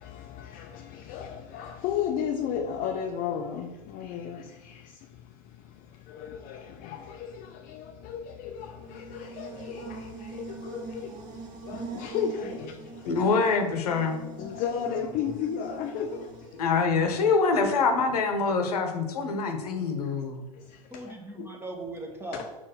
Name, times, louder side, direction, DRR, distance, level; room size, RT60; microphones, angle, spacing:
voice 1, 0.0-4.7 6.1-11.1 11.7-12.7 13.2-13.3 14.4-16.2 21.4-21.5 22.3-22.4, left 8 dB, 45° left, 0.6 m, -34 dB
Buzz, 8.7-16.9, right 4 dB, 40° right, 1.4 m, -43 dB
voice 2, 12.4-12.9 14.6-14.8 20.9-22.5, right 2 dB, 10° right, 1.3 m, -40 dB
voice 3, 13.0-14.2 16.6-20.4, left 4 dB, 75° left, 1.0 m, -25 dB
4.5 x 4.4 x 5.8 m
hypercardioid pair, 85°, 20 cm